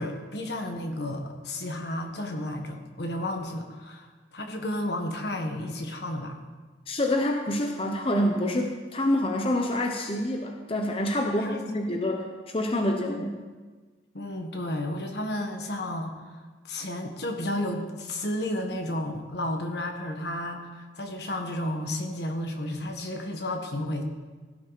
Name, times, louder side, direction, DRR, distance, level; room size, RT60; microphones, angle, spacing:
voice 1, 0.0-6.4 11.4-12.0 14.1-24.0, left 1 dB, 65° left, 4 dB, 1.5 m, -32 dB
voice 2, 6.9-13.3, left 1 dB, 30° left, 3 dB, 0.8 m, -27 dB
16.5 x 11.0 x 4.1 m, 1.4 s
head